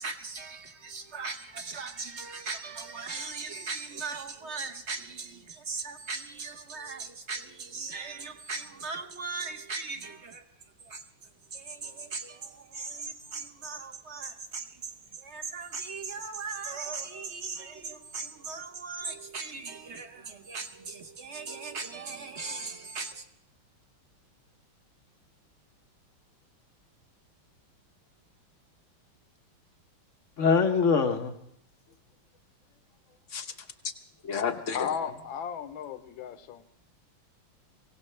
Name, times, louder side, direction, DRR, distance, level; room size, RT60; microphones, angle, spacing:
voice 1, 0.0-10.4 10.8-11.0 11.5-23.3, right 4 dB, 45° right, 1.0 m, -38 dB
voice 2, 30.4-31.3 33.3-33.5 34.2-34.9, left 5 dB, 50° left, 0.9 m, -25 dB
voice 3, 34.7-36.7, left 7 dB, 70° left, 1.6 m, -35 dB
24.0 x 17.0 x 3.3 m
omnidirectional pair, 2.4 m